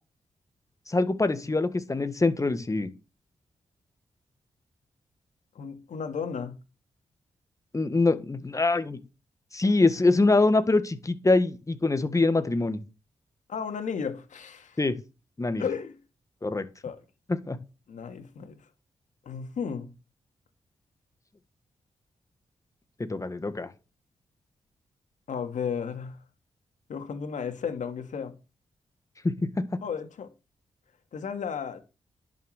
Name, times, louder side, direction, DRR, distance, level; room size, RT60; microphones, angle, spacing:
voice 1, 0.9-2.9 7.7-9.0 9.5-12.8 14.8-15.0 15.4-15.6 16.4-16.7 17.5-17.6 23.1-23.7 29.2-29.5, left 3 dB, 25° left, 1.7 m, -24 dB
voice 2, 5.6-6.6 13.5-14.8 15.6-16.0 16.8-17.0 17.9-18.6 19.3-19.9 25.3-26.2 26.9-28.3 29.8-30.3 31.1-31.8, left 6 dB, 80° left, 2.2 m, -33 dB
11.0 x 6.5 x 6.6 m
cardioid pair, 70°, 13 cm